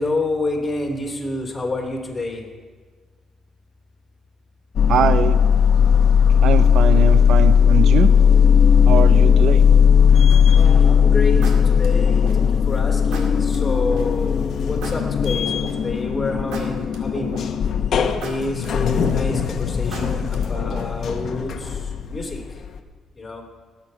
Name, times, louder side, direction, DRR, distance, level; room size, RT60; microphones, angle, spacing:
voice 1, 0.0-2.4 10.5-11.4 11.8-17.3 18.2-21.8 22.0-22.4 23.2-23.4, left 2 dB, 20° left, 1 dB, 3.0 m, -28 dB
sound 1, 4.8-22.8, left 7 dB, 60° left, 0.9 m, -17 dB
voice 2, 4.9-5.4 6.4-8.2 8.8-9.6, right 9 dB, 70° right, 13 dB, 0.5 m, -22 dB
sound 2, 10.6-10.9 11.4-12.6 13.1-14.0 14.8-16.0 16.5-17.7 18.2-19.4 19.9-21.1, right 3 dB, 90° right, 2.0 m, -36 dB
18.5 x 8.1 x 5.6 m, 1.5 s
cardioid pair, 90°, 0 cm